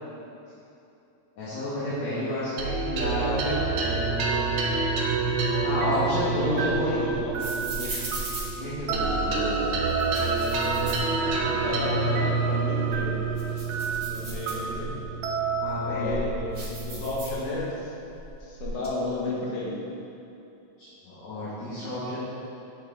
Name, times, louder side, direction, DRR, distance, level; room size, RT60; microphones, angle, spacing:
voice 1, 1.4-3.8 5.6-7.0 8.5-9.5 15.6-16.2 20.8-22.2, left 1 dB, 65° left, -11 dB, 2.5 m, -30 dB
sound 1, 2.6-17.3, right 4 dB, 85° right, 2.2 m, -28 dB
voice 2, 3.0-3.6 6.3-7.9 10.6-10.7 11.2-13.2 14.0-15.0 15.8-17.9 18.4-19.8, left 2 dB, 90° left, -5 dB, 2.7 m, -33 dB
sound 2, 5.9-9.3 9.9-11.7 12.1-12.2 12.7-15.1 15.6-17.8 18.1-18.9, right 2 dB, 30° right, 1.0 m, -38 dB
7.2 x 5.9 x 3.6 m, 2.9 s
omnidirectional pair, 3.4 m